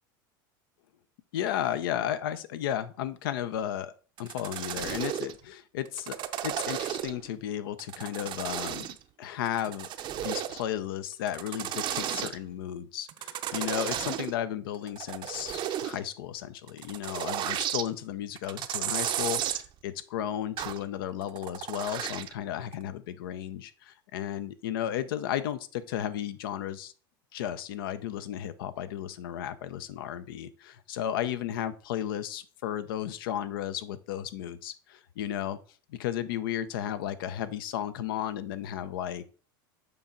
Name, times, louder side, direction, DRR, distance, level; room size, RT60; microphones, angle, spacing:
voice 1, 1.3-3.9 4.2-6.2 6.4-8.9 9.2-9.9 10.2-26.9 27.3-35.6 35.9-39.3, left 11 dB, 80° left, 13 dB, 0.6 m, -34 dB
sound 1, 4.2-5.4 5.9-7.3 7.8-9.0 9.5-10.7 11.1-12.4 13.1-14.3 14.7-16.0 16.7-17.9 18.4-19.7 20.6-20.8 21.2-22.3 22.7-22.8, right 11 dB, 45° right, 0.6 m, -33 dB
6.9 x 4.5 x 3.8 m, 0.39 s
hypercardioid pair, 100°, 12 cm